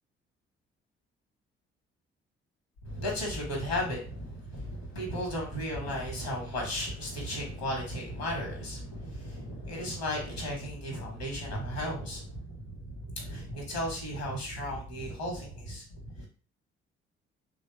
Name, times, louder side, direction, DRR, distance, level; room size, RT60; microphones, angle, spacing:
voice 1, 2.8-16.3, equal, 85° left, 0 dB, 1.0 m, -35 dB
3.0 x 2.2 x 3.1 m, 0.40 s
figure-of-eight pair, 45°, 30 cm